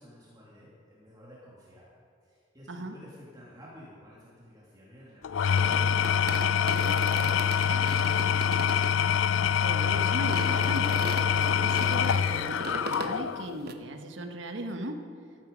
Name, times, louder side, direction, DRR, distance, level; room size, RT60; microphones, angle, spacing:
voice 1, 0.0-1.9 2.2-8.4, equal, 20° right, -6 dB, 2.4 m, -52 dB
Engine / Tools, 5.2-13.6, left 8 dB, 90° left, 0.4 m, -25 dB
sound 1, 5.5-8.9 9.4-9.7 10.3-13.2 13.7-13.8, right 2 dB, 50° right, 0.9 m, -38 dB
voice 2, 9.6-15.1, right 1 dB, 75° right, 5 dB, 1.3 m, -37 dB
14.5 x 13.0 x 5.2 m, 2.2 s
head